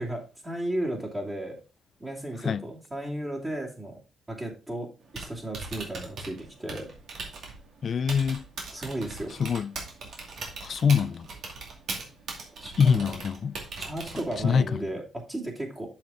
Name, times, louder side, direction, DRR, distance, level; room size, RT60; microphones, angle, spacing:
voice 1, 0.0-1.6 2.0-4.0 4.3-4.9 5.1-6.9 8.7-9.3 12.6-13.1 13.8-15.9, right 1 dB, 20° right, 2.7 m, -34 dB
Typing, 5.0-14.6, right 3 dB, 60° right, 2.4 m, -40 dB
voice 2, 7.8-8.5 9.4-9.7 10.6-11.3 12.8-13.6 14.4-14.8, left 6 dB, 50° left, 0.3 m, -24 dB
7.4 x 5.7 x 3.8 m
cardioid pair, 90°, 0 cm